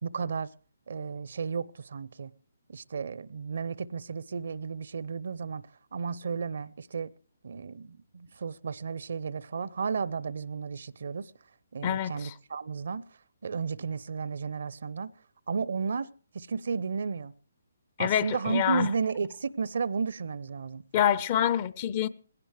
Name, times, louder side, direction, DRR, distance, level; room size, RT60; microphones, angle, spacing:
voice 1, 0.0-0.5 0.9-2.3 2.7-7.1 7.4-11.3 11.7-13.0 13.4-15.1 15.5-17.3 18.0-20.8, right 5 dB, 60° right, 0.6 m, -33 dB
voice 2, 11.8-12.3 18.0-18.9 20.9-22.1, left 10 dB, 35° left, 0.6 m, -26 dB
20.0 x 16.5 x 3.3 m
figure-of-eight pair, 135°, 0 cm